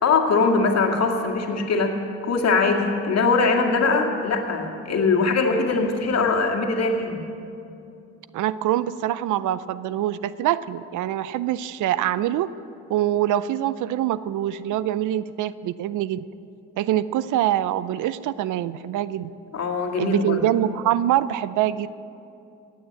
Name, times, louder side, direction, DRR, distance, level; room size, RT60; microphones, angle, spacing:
voice 1, 0.0-2.0 2.2-7.2 19.5-20.4, left 4 dB, 55° left, 2 dB, 2.2 m, -21 dB
voice 2, 8.3-12.5 12.9-16.2 16.8-19.3 20.0-21.9, right 12 dB, 70° right, 17 dB, 0.6 m, -24 dB
17.5 x 9.4 x 7.7 m, 2.6 s
supercardioid pair, 75°, 32 cm